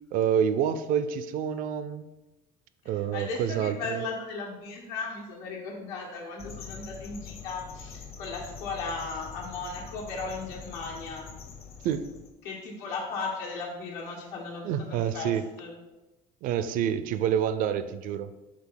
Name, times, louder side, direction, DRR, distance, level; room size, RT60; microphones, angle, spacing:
voice 1, 0.1-2.1 2.9-4.0 11.8-12.1 14.6-15.4 16.4-18.3, right 9 dB, 50° right, 13 dB, 0.4 m, -27 dB
voice 2, 2.8-11.3 12.4-15.7, left 4 dB, 85° left, -1 dB, 1.7 m, -36 dB
sound 1, 6.4-12.3, left 6 dB, 35° left, 0.7 m, -44 dB
5.1 x 3.6 x 5.6 m, 1.1 s
cardioid pair, 160°, 18 cm